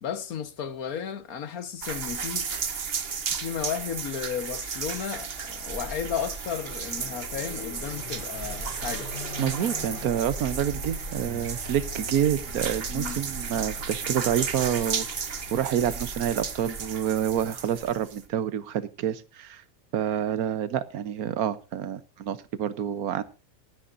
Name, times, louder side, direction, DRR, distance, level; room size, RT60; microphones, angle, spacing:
voice 1, 0.0-2.5 3.4-9.1 11.1-11.5 12.9-13.2, left 8 dB, 80° left, 1.7 m, -34 dB
sound 1, 1.8-18.3, right 6 dB, 45° right, 1.2 m, -34 dB
Car passing by / Accelerating revving vroom, 5.6-16.9, left 1 dB, 45° left, 3.9 m, -40 dB
voice 2, 9.4-19.6 19.9-23.2, right 10 dB, 85° right, 1.4 m, -28 dB
26.0 x 10.0 x 2.6 m
omnidirectional pair, 1.5 m